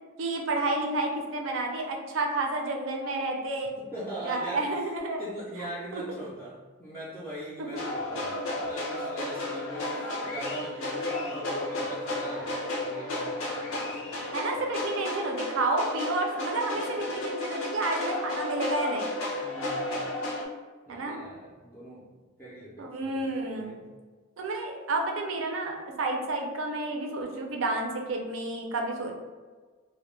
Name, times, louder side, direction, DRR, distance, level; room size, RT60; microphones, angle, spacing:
voice 1, 0.2-3.7 4.2-5.2 5.6-6.0 7.6-7.7 9.9-10.0 14.3-19.1 20.9-21.2 22.8-23.8 24.4-29.2, right 2 dB, 75° right, 2 dB, 0.4 m, -30 dB
voice 2, 3.6-4.8 5.2-14.2 14.5-14.7 16.9-17.1 19.3-20.0 20.9-22.0 22.4-23.8, right 1 dB, 10° left, -9 dB, 0.3 m, -41 dB
sound 1, 7.8-20.4, left 2 dB, 90° left, 0.5 m, -33 dB
2.2 x 2.0 x 3.0 m, 1.4 s
head